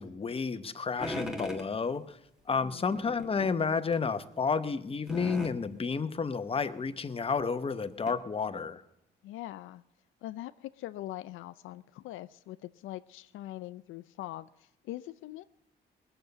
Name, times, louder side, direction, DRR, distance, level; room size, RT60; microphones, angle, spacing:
voice 1, 0.0-2.2 2.5-8.8, left 5 dB, 30° left, 10 dB, 0.9 m, -31 dB
sound 1, 1.0-1.7 2.9-3.5 3.9-4.0 5.1-5.6 6.9-7.0 7.4-7.5 8.1-8.2, equal, 5° right, 1.9 m, -38 dB
voice 2, 2.6-3.0 9.2-9.8 10.2-15.4, left 15 dB, 85° left, 14 dB, 0.5 m, -42 dB
20.0 x 6.8 x 8.0 m, 0.87 s
cardioid pair, 90°, 20 cm